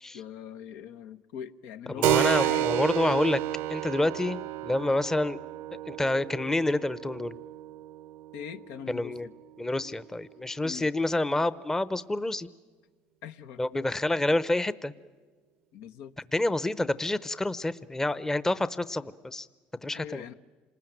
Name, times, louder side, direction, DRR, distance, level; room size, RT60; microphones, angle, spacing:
voice 1, 0.1-2.7 8.3-9.3 10.6-10.9 13.2-13.6 15.7-16.1 19.9-20.3, left 8 dB, 80° left, 10 dB, 0.9 m, -41 dB
voice 2, 2.0-3.4 3.7-5.4 5.9-7.4 8.9-9.3 9.6-12.5 13.6-14.9 16.3-19.5 19.8-20.2, left 2 dB, 10° left, 16 dB, 0.7 m, -28 dB
Keyboard (musical), 2.0-10.2, right 15 dB, 85° right, 0.8 m, -31 dB
27.5 x 20.0 x 9.1 m, 1.4 s
cardioid pair, 105°, 4 cm